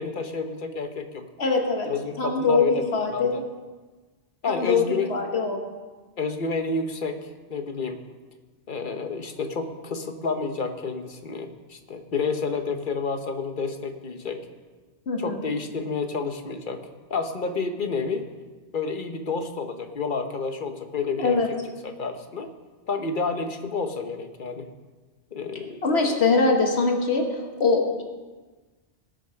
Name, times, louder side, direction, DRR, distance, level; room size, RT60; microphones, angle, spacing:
voice 1, 0.0-1.2 1.8-2.8 3.1-3.4 4.4-5.1 6.2-7.2 7.5-8.0 8.7-14.4 15.2-16.8 17.1-18.3 18.7-21.6 21.8-22.5 22.9-24.7 25.3-25.8, left 4 dB, 50° left, 7 dB, 1.1 m, -30 dB
voice 2, 1.4-1.9 2.2-3.4 4.5-5.6 15.1-15.4 21.2-21.5 25.8-28.0, left 4 dB, 70° left, 2 dB, 1.6 m, -23 dB
19.0 x 6.5 x 5.7 m, 1.3 s
omnidirectional pair, 1.1 m